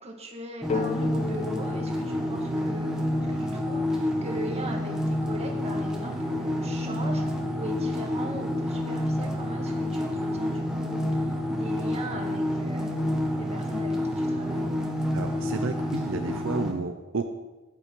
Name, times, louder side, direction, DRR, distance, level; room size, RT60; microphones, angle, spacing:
voice 1, 0.0-11.0 11.5-12.9 13.4-14.7, right 1 dB, 30° right, 1 dB, 1.9 m, -39 dB
sound 1, 0.6-16.7, left 1 dB, 5° right, 1.6 m, -29 dB
sound 2, 0.7-4.4, left 5 dB, 30° left, 0.3 m, -37 dB
voice 2, 15.1-17.3, right 4 dB, 65° right, 6 dB, 0.7 m, -32 dB
13.0 x 9.5 x 4.6 m, 1.1 s
head